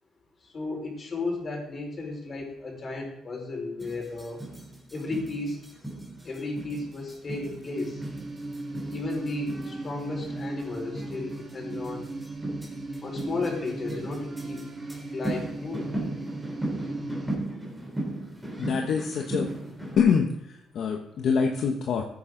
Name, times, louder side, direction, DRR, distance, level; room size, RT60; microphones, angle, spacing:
voice 1, 0.4-4.4 4.9-5.6 6.2-8.0 8.9-12.1 13.0-14.6 15.1-15.9, left 3 dB, 40° left, 0 dB, 4.7 m, -34 dB
sound 1, 3.8-20.0, right 1 dB, 5° right, 3.6 m, -37 dB
sound 2, 7.7-17.4, right 2 dB, 30° right, 2.2 m, -37 dB
voice 2, 18.6-19.5 20.0-22.0, left 6 dB, 70° left, 3 dB, 1.1 m, -25 dB
15.0 x 9.5 x 3.9 m, 0.76 s
cardioid pair, 90°, 0 cm